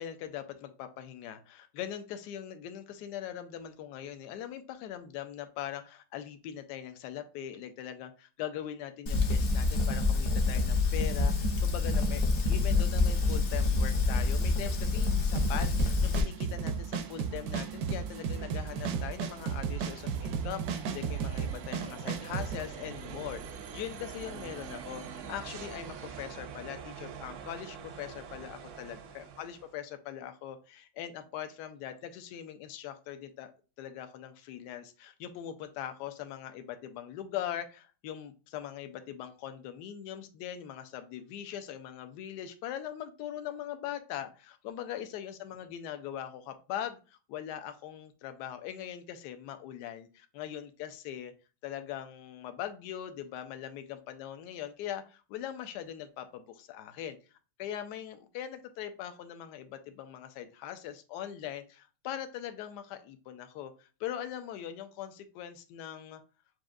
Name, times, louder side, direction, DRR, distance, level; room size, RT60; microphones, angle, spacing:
voice 1, 0.0-12.2 12.5-33.5 33.8-51.3 51.6-57.2 57.6-66.2, left 10 dB, 75° left, 9 dB, 1.1 m, -41 dB
Fire, 9.1-16.2, left 3 dB, 55° left, 0.8 m, -27 dB
sound 1, 10.3-29.7, right 6 dB, 90° right, 0.6 m, -46 dB
sound 2, 15.4-22.6, right 6 dB, 75° right, 1.1 m, -34 dB
7.5 x 2.6 x 2.4 m, 0.34 s
omnidirectional pair, 1.9 m